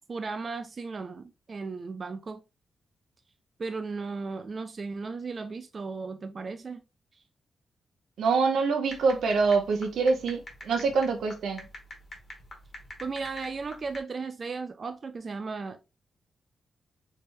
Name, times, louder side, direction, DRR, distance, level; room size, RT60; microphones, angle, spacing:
voice 1, 0.1-2.4 3.6-6.8 7.1-7.2 13.0-15.8, right 4 dB, 40° right, 0.3 m, -36 dB
voice 2, 8.2-11.7, right 4 dB, 90° right, 0.7 m, -25 dB
sound 1, 8.9-14.0, left 1 dB, 45° left, 1.4 m, -46 dB
3.4 x 3.3 x 2.6 m
wide cardioid pair, 115°, 0 cm